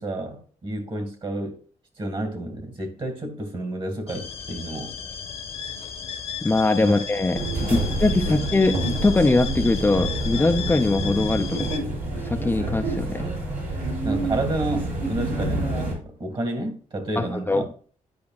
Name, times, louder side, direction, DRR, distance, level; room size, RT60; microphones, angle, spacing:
voice 1, 0.0-1.6 2.0-5.0 6.8-6.9 7.7-7.9 8.2-8.4 14.0-17.7, right 1 dB, 40° right, 2.0 m, -30 dB
sound 1, 4.1-11.8, left 7 dB, 50° left, 1.0 m, -35 dB
voice 2, 6.4-8.7 9.0-11.7 12.2-13.2 17.2-17.6, left 2 dB, 15° left, 0.5 m, -22 dB
sound 2, 7.3-15.9, right 2 dB, 85° right, 3.4 m, -28 dB
10.5 x 5.1 x 2.4 m
cardioid pair, 90°, 13 cm